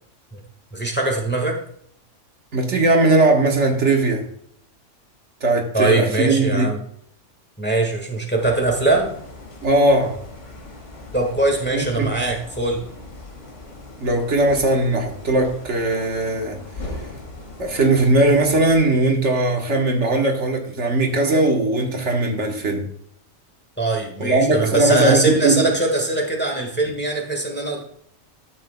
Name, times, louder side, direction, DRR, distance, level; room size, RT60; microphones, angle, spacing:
voice 1, 0.7-1.6 5.7-6.8 7.6-9.1 11.1-12.8 23.8-27.8, right 2 dB, 10° left, 1 dB, 1.5 m, -21 dB
voice 2, 2.5-4.3 5.4-6.7 9.6-10.2 11.7-12.2 14.0-16.6 17.6-22.8 24.2-25.7, right 2 dB, 70° right, 2 dB, 1.5 m, -19 dB
sound 1, 8.4-18.8, left 2 dB, 75° left, 2.3 m, -39 dB
12.0 x 7.6 x 2.2 m, 0.67 s
omnidirectional pair, 1.3 m